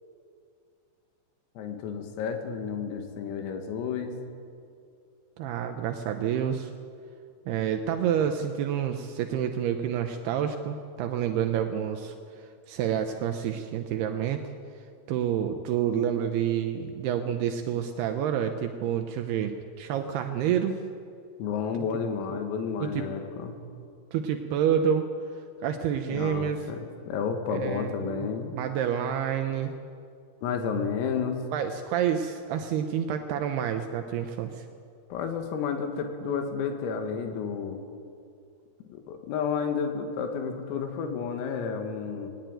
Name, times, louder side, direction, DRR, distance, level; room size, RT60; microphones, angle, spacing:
voice 1, 1.6-4.2 17.8-17.9 21.4-23.6 26.1-28.6 30.4-31.4 35.1-37.8 38.9-42.3, left 6 dB, 85° left, 5 dB, 4.7 m, -31 dB
voice 2, 5.4-6.7 7.5-14.4 15.1-20.8 22.3-22.4 22.8-23.0 24.1-25.1 25.6-26.6 27.6-28.3 28.5-29.8 31.5-34.7, right 9 dB, 85° right, 6 dB, 2.2 m, -28 dB
20.5 x 18.0 x 9.2 m, 2.4 s
omnidirectional pair, 5.9 m